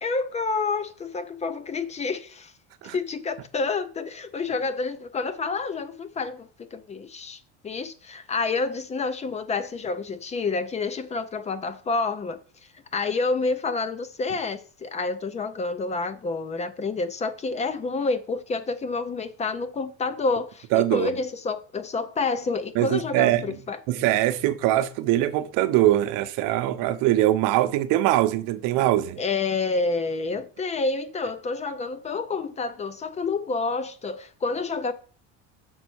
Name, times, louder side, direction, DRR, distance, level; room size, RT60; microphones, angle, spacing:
voice 1, 0.0-2.5 2.9-12.4 12.9-23.8 29.2-34.9, left 3 dB, 20° left, 0.6 m, -28 dB
voice 2, 20.7-21.1 22.7-23.5 23.9-29.2, right 14 dB, 60° right, 0.9 m, -22 dB
6.3 x 4.0 x 6.3 m
cardioid pair, 140°, 36 cm